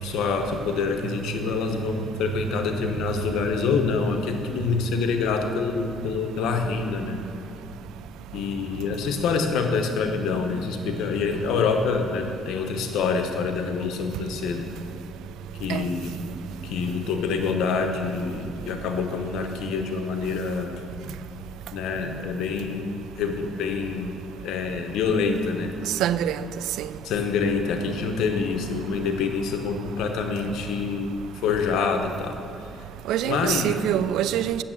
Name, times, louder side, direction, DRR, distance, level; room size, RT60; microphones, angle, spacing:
voice 1, 0.0-7.2 8.3-14.7 15.5-16.2 16.6-20.8 21.7-24.2 24.4-25.8 27.0-32.4 32.7-32.9 33.2-33.7, left 5 dB, 90° left, 0.9 m, -26 dB
voice 2, 26.0-26.4 26.8-26.9 33.1-34.6, right 11 dB, 90° right, 0.3 m, -24 dB
8.8 x 7.1 x 7.4 m
cardioid pair, 90°, 0 cm